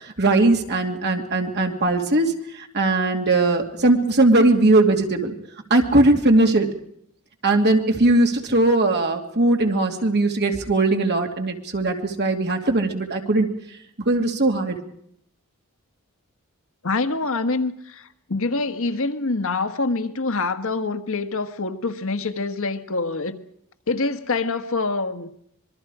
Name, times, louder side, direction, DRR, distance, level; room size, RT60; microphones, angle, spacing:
voice 1, 0.2-2.3 2.7-5.3 5.7-6.7 7.4-13.5 14.1-14.7, right 2 dB, 50° right, 3 dB, 2.6 m, -19 dB
voice 2, 16.8-23.4 23.9-25.3, left 3 dB, 65° left, 9 dB, 1.4 m, -25 dB
26.0 x 22.5 x 4.9 m, 0.69 s
head